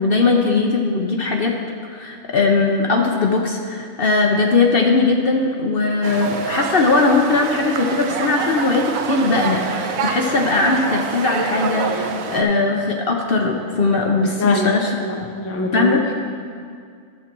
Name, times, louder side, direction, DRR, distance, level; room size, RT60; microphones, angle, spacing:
voice 1, 0.0-1.5 1.9-14.9 15.7-16.0, left 3 dB, 50° left, 1 dB, 0.8 m, -19 dB
sound 1, 6.0-12.4, right 5 dB, 80° right, 1.1 m, -26 dB
voice 2, 14.4-14.7 15.0-16.2, left 2 dB, 15° left, 1 dB, 0.6 m, -24 dB
11.5 x 7.1 x 4.5 m, 2.2 s
omnidirectional pair, 1.4 m